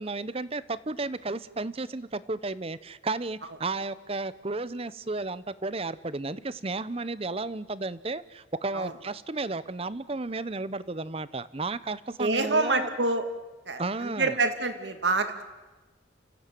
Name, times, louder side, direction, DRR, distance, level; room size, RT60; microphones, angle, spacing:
voice 1, 0.0-12.9 13.8-14.4, right 3 dB, 30° right, 16 dB, 0.8 m, -33 dB
voice 2, 12.2-13.2 13.7-15.4, right 3 dB, 65° right, 7 dB, 2.5 m, -27 dB
29.5 x 15.5 x 9.3 m, 1.2 s
head